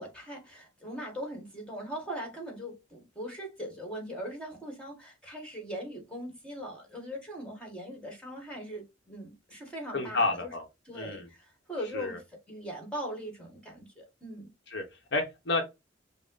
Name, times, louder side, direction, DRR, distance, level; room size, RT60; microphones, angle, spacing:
voice 1, 0.0-10.5 10.8-14.5, equal, 5° left, 1.4 m, -40 dB
voice 2, 9.9-10.6 10.9-11.3 11.9-12.2 14.7-14.8 15.1-15.6, left 3 dB, 55° left, 0.9 m, -30 dB
5.3 x 2.1 x 3.8 m
head